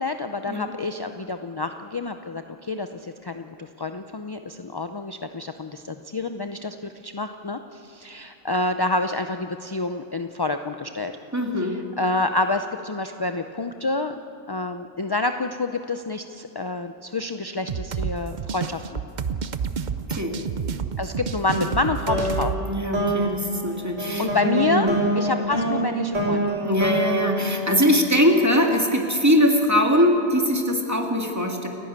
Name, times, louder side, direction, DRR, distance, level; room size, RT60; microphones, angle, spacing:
voice 1, 0.0-11.1 11.6-14.1 14.5-19.0 21.0-22.5 24.2-24.9 25.2-26.5, left 3 dB, 30° left, 7 dB, 0.4 m, -28 dB
voice 2, 11.3-11.8 20.1-20.4 21.5-21.7 22.7-24.3 24.7-25.0 26.6-31.7, equal, 15° right, 1 dB, 2.2 m, -21 dB
sound 1, 17.7-22.6, right 6 dB, 45° right, 0.7 m, -29 dB
sound 2, 22.1-28.5, right 1 dB, 80° right, 5.2 m, -26 dB
29.5 x 11.0 x 8.8 m, 2.9 s
omnidirectional pair, 1.3 m